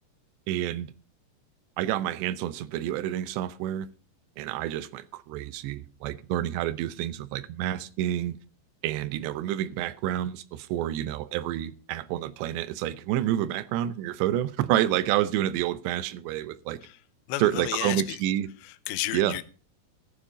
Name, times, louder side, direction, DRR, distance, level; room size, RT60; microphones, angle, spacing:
voice 1, 0.5-0.9 1.8-3.9 4.4-8.4 8.8-16.8 17.4-18.5 19.1-19.4, right 12 dB, 80° right, 2.9 m, -29 dB
voice 2, 17.3-18.2 18.6-19.4, left 16 dB, 85° left, 2.9 m, -32 dB
14.5 x 7.0 x 5.1 m
omnidirectional pair, 5.0 m